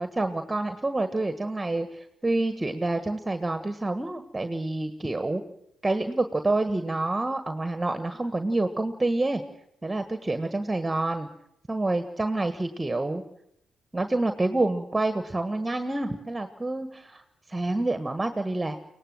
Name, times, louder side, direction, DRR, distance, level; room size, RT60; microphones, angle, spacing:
voice 1, 0.0-5.4 5.8-9.4 9.8-11.3 11.7-13.2 13.9-17.2 17.5-18.8, right 2 dB, 20° right, 8 dB, 1.5 m, -28 dB
23.5 x 18.0 x 7.8 m, 0.78 s
hypercardioid pair, 50°, 0 cm